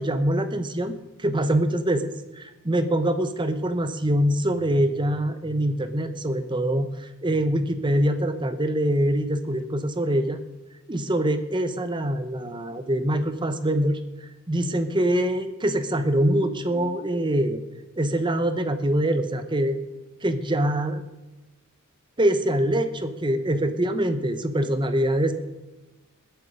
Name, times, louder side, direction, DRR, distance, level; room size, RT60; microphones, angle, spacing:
voice 1, 0.0-6.9 7.2-10.4 10.9-14.0 14.5-17.6 18.0-19.8 20.2-21.0 22.2-25.3, right 1 dB, 20° right, 10 dB, 0.9 m, -24 dB
20.5 x 8.1 x 5.2 m, 1.1 s
head